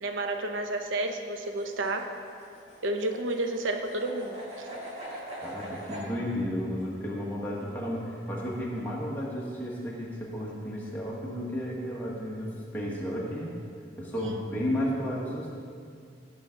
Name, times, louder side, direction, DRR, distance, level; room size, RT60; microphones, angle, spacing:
voice 1, 0.0-2.0 2.8-4.7 14.1-14.5, right 2 dB, 90° right, 5 dB, 0.8 m, -31 dB
sound 1, 1.3-6.1, equal, 35° right, 1.8 m, -42 dB
voice 2, 5.4-13.6 14.0-15.6, equal, 10° left, -5 dB, 1.5 m, -33 dB
15.5 x 5.6 x 3.8 m, 2.3 s
head